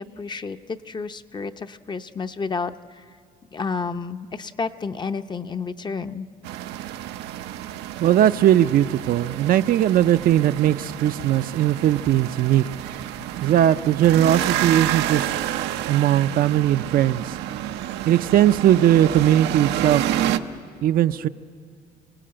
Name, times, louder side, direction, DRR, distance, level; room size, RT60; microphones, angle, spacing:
voice 1, 0.0-3.0 3.5-6.3, left 4 dB, 25° left, 9 dB, 0.7 m, -31 dB
sound 1, 6.4-20.4, right 12 dB, 90° right, 0.8 m, -29 dB
voice 2, 8.0-12.9 13.4-15.3 15.8-17.4 18.0-20.1 20.8-21.3, right 11 dB, 60° right, 11 dB, 0.5 m, -19 dB
26.5 x 17.5 x 8.8 m, 2.2 s
cardioid pair, 110°, 17 cm